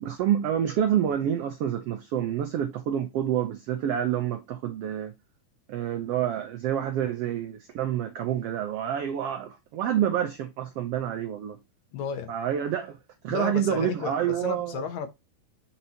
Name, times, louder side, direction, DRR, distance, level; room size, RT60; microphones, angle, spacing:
voice 1, 0.0-5.1 5.7-11.6 12.3-13.0 13.2-14.8, right 10 dB, 90° right, 1.3 m, -28 dB
voice 2, 11.9-12.3 13.3-15.1, left 6 dB, 70° left, 2.0 m, -33 dB
8.0 x 4.3 x 2.8 m
omnidirectional pair, 3.7 m